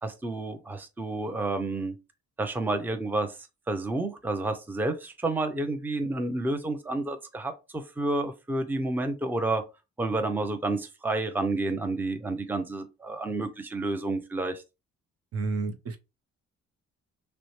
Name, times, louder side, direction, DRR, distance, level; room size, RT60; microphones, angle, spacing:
voice 1, 0.0-2.0 2.4-3.4 3.7-9.6 10.0-14.6, right 2 dB, 5° right, 0.6 m, -30 dB
voice 2, 15.3-16.0, right 3 dB, 50° right, 0.7 m, -30 dB
5.9 x 2.1 x 3.0 m
cardioid pair, 90°, 30 cm